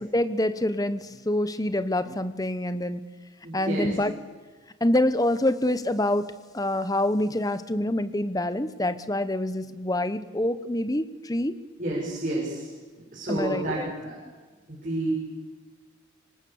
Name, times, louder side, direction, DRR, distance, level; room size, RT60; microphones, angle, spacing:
voice 1, 0.1-3.0 3.5-4.1 4.8-6.3 6.5-11.6 13.3-13.9, left 1 dB, 20° left, 12 dB, 1.0 m, -26 dB
voice 2, 3.4-4.0 11.8-12.7 13.1-14.1 14.7-15.1, right 1 dB, 40° right, -5 dB, 7.0 m, -30 dB
26.0 x 25.5 x 7.2 m, 1.3 s
head